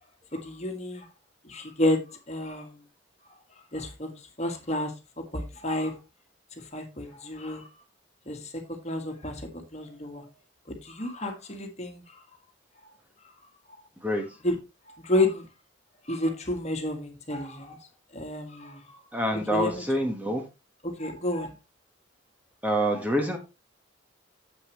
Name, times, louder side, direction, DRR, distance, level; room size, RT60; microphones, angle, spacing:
voice 1, 0.3-1.1 1.4-2.0 2.3-2.8 3.7-5.9 6.7-7.6 8.3-10.2 10.7-12.0 14.4-14.6 14.9-15.5 16.1-17.8 18.1-19.0 19.5-19.8 20.8-21.5 22.9-23.0, left 1 dB, 35° left, 1.7 m, -30 dB
voice 2, 19.1-20.4 22.6-23.4, equal, 10° right, 1.2 m, -26 dB
9.6 x 7.7 x 3.1 m
head